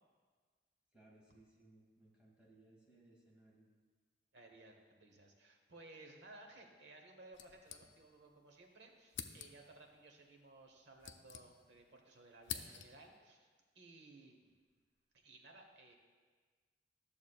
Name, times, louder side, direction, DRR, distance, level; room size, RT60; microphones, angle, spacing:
voice 1, 0.9-3.7, right 2 dB, 5° right, -5 dB, 1.8 m, -65 dB
voice 2, 4.3-13.5 13.7-14.5 15.1-15.9, right 2 dB, 70° right, 2 dB, 1.1 m, -59 dB
sound 1, 7.3-8.3 8.6-8.7 9.1-9.8 10.6-11.9 12.2-13.2, left 8 dB, 80° left, 0.5 m, -49 dB
12.5 x 7.0 x 2.4 m, 1.5 s
head